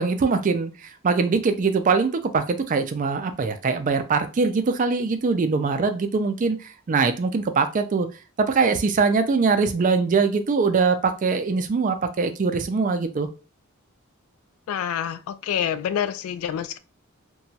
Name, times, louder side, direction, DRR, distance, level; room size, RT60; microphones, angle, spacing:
voice 1, 0.0-8.1 8.4-13.3, right 4 dB, 40° right, 0.3 m, -22 dB
voice 2, 14.7-16.8, left 9 dB, 80° left, 0.3 m, -27 dB
2.8 x 2.2 x 2.7 m
head